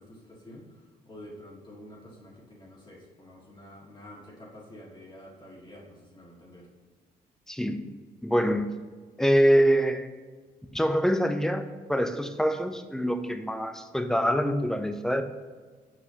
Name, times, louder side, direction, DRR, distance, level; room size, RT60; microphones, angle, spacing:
voice 1, 0.0-6.7, left 1 dB, 30° left, -4 dB, 1.8 m, -48 dB
voice 2, 7.5-8.0 8.2-8.7 9.2-10.1 10.7-15.2, equal, 5° left, 7 dB, 0.6 m, -25 dB
6.0 x 5.8 x 2.8 m, 1.5 s
cardioid pair, 75°, 16 cm